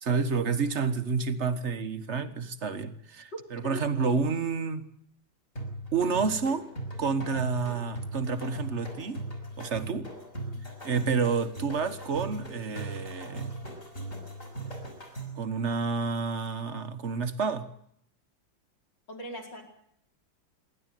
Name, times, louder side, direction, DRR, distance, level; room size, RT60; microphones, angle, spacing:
voice 1, 0.0-4.9 5.9-6.7 7.0-9.2 9.6-10.1 10.8-13.5 15.4-17.7, right 5 dB, 40° right, 10 dB, 1.6 m, -29 dB
voice 2, 3.6-4.3 19.1-19.6, left 2 dB, 65° left, 1 dB, 5.3 m, -41 dB
sound 1, 5.6-15.5, right 1 dB, 40° left, 6.3 m, -39 dB
27.5 x 12.0 x 9.3 m, 0.69 s
omnidirectional pair, 2.1 m